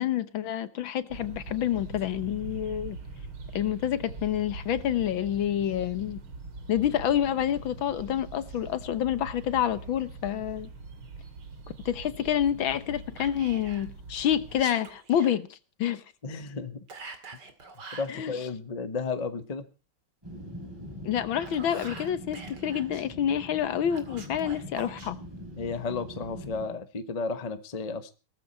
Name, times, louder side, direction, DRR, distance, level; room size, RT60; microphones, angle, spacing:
voice 1, 0.0-3.0 3.5-6.2 6.7-10.7 11.9-16.0 18.1-18.4 21.0-25.2, left 10 dB, 70° left, 1.8 m, -28 dB
sound 1, 1.1-14.6, right 3 dB, 85° right, 3.2 m, -43 dB
Whispering, 13.2-13.9 14.5-15.3 16.9-18.1 21.2-23.0 23.9-25.1, right 4 dB, 55° right, 2.9 m, -45 dB
voice 2, 16.2-16.8 17.9-19.6 25.6-28.1, left 4 dB, 25° left, 0.9 m, -33 dB
sound 2, 20.2-26.6, equal, 10° right, 8.1 m, -43 dB
18.5 x 14.0 x 4.3 m
omnidirectional pair, 2.3 m